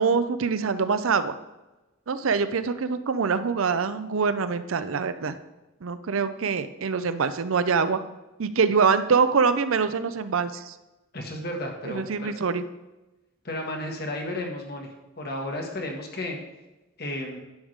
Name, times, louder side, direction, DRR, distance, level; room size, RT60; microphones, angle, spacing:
voice 1, 0.0-1.3 2.1-5.4 5.8-8.0 8.4-10.7 11.8-12.6, right 5 dB, 85° right, 11 dB, 0.6 m, -24 dB
voice 2, 11.1-12.3 13.4-14.9 15.2-16.4 17.0-17.4, left 1 dB, 50° left, 2 dB, 1.5 m, -33 dB
10.5 x 3.6 x 6.5 m, 1.1 s
head